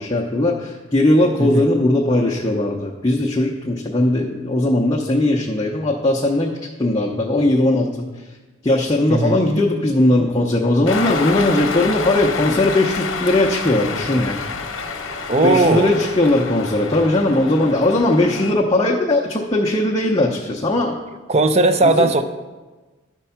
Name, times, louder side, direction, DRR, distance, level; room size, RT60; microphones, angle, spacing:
voice 1, 0.0-7.9 8.6-14.4 15.4-21.0 21.8-22.1, left 1 dB, 20° left, -3 dB, 0.6 m, -18 dB
voice 2, 1.4-1.7 9.1-9.4 15.3-16.1 21.3-22.2, right 2 dB, 30° right, 9 dB, 0.5 m, -17 dB
Cheering, 10.9-18.5, left 4 dB, 75° left, 0.8 m, -28 dB
12.5 x 4.5 x 5.7 m, 1.3 s
head